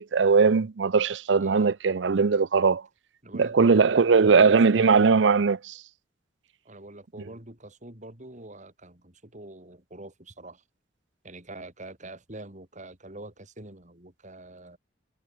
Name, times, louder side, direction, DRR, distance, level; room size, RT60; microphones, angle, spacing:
voice 1, 0.0-2.8 3.3-5.8, right 5 dB, 90° right, 0.6 m, -20 dB
voice 2, 1.4-1.8 3.2-4.8 6.7-10.6 11.2-14.8, right 2 dB, 45° right, 5.4 m, -44 dB
head